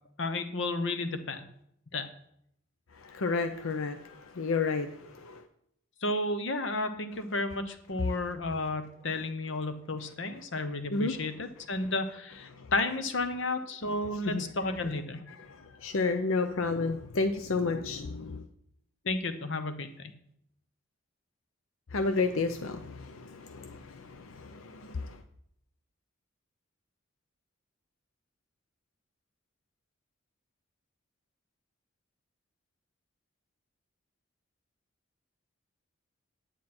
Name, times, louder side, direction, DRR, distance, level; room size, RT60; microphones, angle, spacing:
voice 1, 0.2-1.5 1.9-2.1 6.0-15.2 19.0-20.1, left 2 dB, 65° left, 9 dB, 0.9 m, -32 dB
voice 2, 3.0-5.4 10.9-11.1 12.6-12.7 14.2-14.4 15.5-18.4 21.9-25.2, left 3 dB, 80° left, 8 dB, 0.6 m, -31 dB
9.6 x 9.1 x 4.3 m, 0.73 s
head